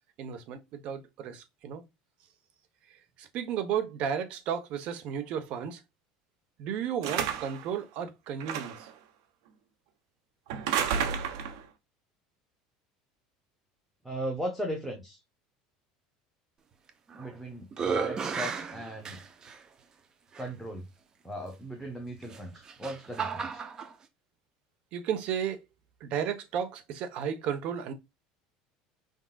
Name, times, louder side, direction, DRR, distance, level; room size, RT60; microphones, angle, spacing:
voice 1, 0.2-1.8 2.9-5.8 6.6-8.9 24.9-25.6 26.0-27.9, right 8 dB, 55° right, 1.2 m, -33 dB
sound 1, 7.0-7.6 8.4-8.9 10.5-11.6, right 8 dB, 80° right, 1.1 m, -31 dB
voice 2, 14.0-15.2 17.2-19.2 20.4-20.9 21.2-23.6, equal, ahead, 1.2 m, -37 dB
sound 2, 16.9-17.3 17.7-19.6 20.3-20.4 22.2-23.9, right 5 dB, 30° right, 0.8 m, -34 dB
5.3 x 3.8 x 2.4 m
supercardioid pair, 130°, 2 cm